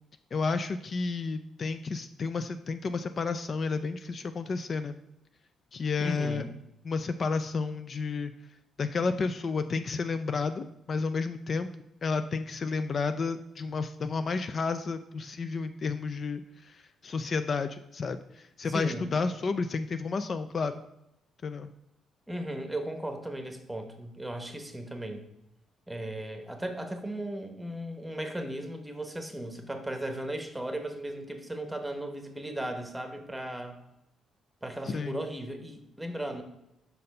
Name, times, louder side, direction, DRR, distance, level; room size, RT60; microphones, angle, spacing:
voice 1, 0.3-5.0 5.7-6.4 6.9-8.3 8.8-11.7 12.0-20.8 21.4-21.7 34.9-35.2, left 4 dB, 45° left, 10 dB, 0.3 m, -31 dB
voice 2, 6.0-6.5 18.6-19.1 22.3-25.2 25.9-33.8 34.6-36.4, right 1 dB, 10° right, 6 dB, 0.9 m, -36 dB
5.5 x 4.1 x 5.3 m, 0.86 s
cardioid pair, 90°, 0 cm